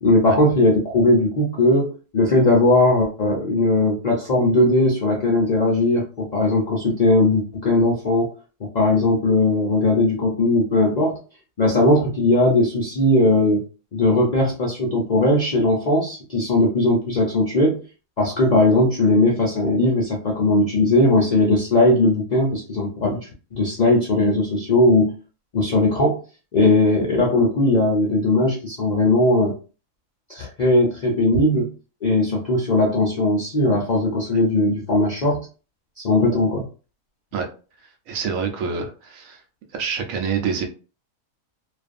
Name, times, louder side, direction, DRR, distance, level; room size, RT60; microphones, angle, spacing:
voice 1, 0.0-8.3 8.6-11.2 11.6-13.6 13.9-17.8 18.2-25.1 25.5-26.2 26.5-29.5 30.3-31.7 32.0-35.5 36.0-36.6, left 2 dB, 55° left, -2 dB, 0.4 m, -19 dB
voice 2, 38.1-39.4 39.7-40.7, right 6 dB, 75° right, 4 dB, 1.0 m, -26 dB
2.5 x 2.4 x 2.4 m, 0.35 s
omnidirectional pair, 1.5 m